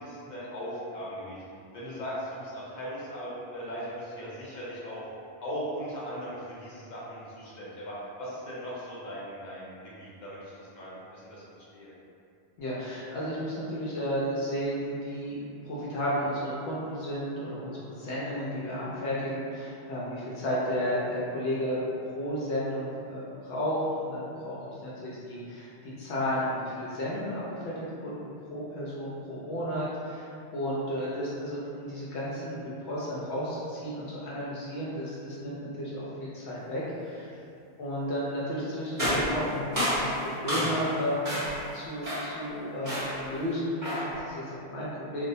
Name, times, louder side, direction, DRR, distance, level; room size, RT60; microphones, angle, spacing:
voice 1, 0.0-1.4 1.7-5.1 5.4-11.9 37.3-37.4, equal, 50° left, -7 dB, 0.6 m, -39 dB
voice 2, 12.6-37.3 37.8-40.1 40.4-41.3 41.7-45.3, equal, 80° left, -7 dB, 0.8 m, -33 dB
sound 1, 39.0-40.9 41.2-41.7 42.0-42.4 42.8-43.3 43.8-44.2, equal, 20° right, 0.9 m, -30 dB
2.4 x 2.0 x 2.6 m, 2.5 s
omnidirectional pair, 1.1 m